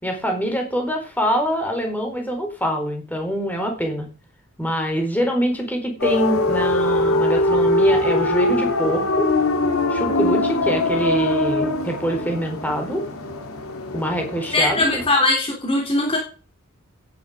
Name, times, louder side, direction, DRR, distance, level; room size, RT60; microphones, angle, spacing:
voice 1, 0.0-4.1 4.6-9.3 9.9-13.0 13.9-15.0, equal, 10° left, 2 dB, 4.6 m, -24 dB
sound 1, 6.0-15.1, left 2 dB, 90° left, 2.9 m, -22 dB
voice 2, 14.5-16.2, left 2 dB, 25° left, 1 dB, 3.6 m, -20 dB
16.5 x 11.0 x 5.1 m, 0.35 s
head